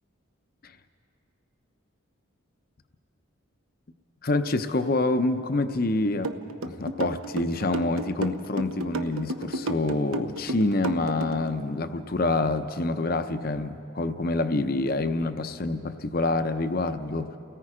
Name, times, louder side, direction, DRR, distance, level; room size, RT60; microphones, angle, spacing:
voice 1, 4.2-6.3 6.6-17.4, left 2 dB, 45° left, 9 dB, 0.7 m, -27 dB
sound 1, 6.2-11.5, right 2 dB, 80° right, 0.9 m, -32 dB
29.5 x 18.0 x 4.9 m, 2.7 s
head